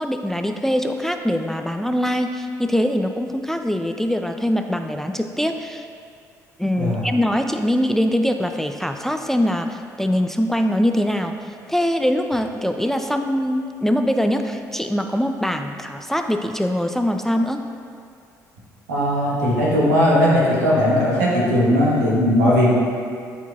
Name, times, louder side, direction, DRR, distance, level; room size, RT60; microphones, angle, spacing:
voice 1, 0.0-5.9 6.6-17.6, equal, 5° left, 6 dB, 0.4 m, -23 dB
voice 2, 18.9-22.7, equal, 80° right, -5 dB, 1.3 m, -18 dB
12.0 x 4.4 x 2.4 m, 2.3 s
figure-of-eight pair, 50°, 9 cm